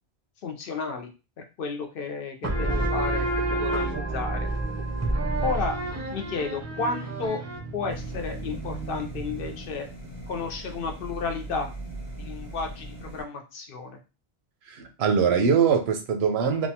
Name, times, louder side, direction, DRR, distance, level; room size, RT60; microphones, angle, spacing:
voice 1, 0.4-1.1 1.4-3.2 3.5-4.5 5.4-5.8 6.1-7.4 7.7-9.9 10.3-11.7 12.2-14.0, left 4 dB, 65° left, 4 dB, 0.7 m, -32 dB
sound 1, 2.4-9.7, right 2 dB, 25° right, 0.4 m, -29 dB
sound 2, 7.9-13.2, right 2 dB, 30° left, 0.9 m, -39 dB
voice 2, 14.7-16.7, right 6 dB, 85° right, 6 dB, 0.8 m, -22 dB
2.8 x 2.1 x 2.7 m, 0.30 s
omnidirectional pair, 1.1 m